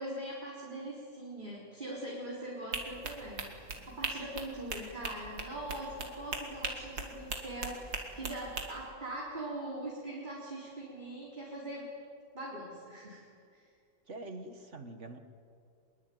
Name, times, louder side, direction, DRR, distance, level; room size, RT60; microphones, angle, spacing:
voice 1, 0.0-11.9 12.3-13.2 13.5-13.7, right 1 dB, 25° right, -4 dB, 4.2 m, -42 dB
sound 1, 2.7-8.7, right 3 dB, 70° right, 3.4 m, -39 dB
voice 2, 14.1-15.2, right 2 dB, 40° right, 8 dB, 1.8 m, -44 dB
24.5 x 22.0 x 9.4 m, 2.4 s
omnidirectional pair, 2.1 m